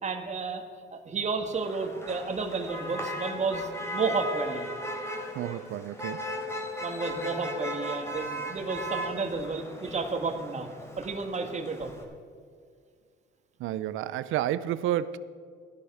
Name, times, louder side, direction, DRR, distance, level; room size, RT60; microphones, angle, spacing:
voice 1, 0.0-4.7 6.8-10.7 11.0-12.1, right 4 dB, 35° right, 5 dB, 1.8 m, -32 dB
Motor vehicle (road), 1.5-12.0, equal, 15° left, 3.3 m, -37 dB
voice 2, 5.3-6.3 13.6-15.2, right 12 dB, 90° right, 16 dB, 0.6 m, -30 dB
16.5 x 11.5 x 4.9 m, 2.1 s
cardioid pair, 90°, 20 cm